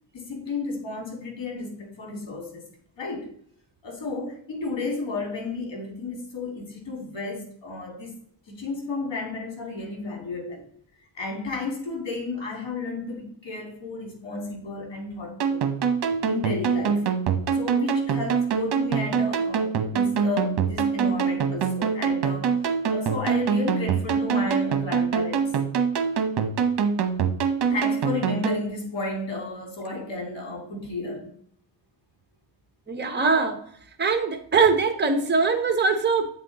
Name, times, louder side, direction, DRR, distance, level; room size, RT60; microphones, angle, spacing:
voice 1, 0.1-2.7 3.0-3.3 3.8-8.2 8.5-10.7 11.1-15.7 16.3-17.0 17.5-22.5 22.9-25.4 27.7-31.3, left 3 dB, 75° left, 2 dB, 2.7 m, -32 dB
sound 1, 15.4-28.6, right 6 dB, 65° right, 0.9 m, -24 dB
voice 2, 32.9-33.6 34.0-36.3, right 4 dB, 25° right, 7 dB, 0.9 m, -22 dB
8.1 x 4.3 x 4.1 m, 0.64 s
wide cardioid pair, 115°, 44 cm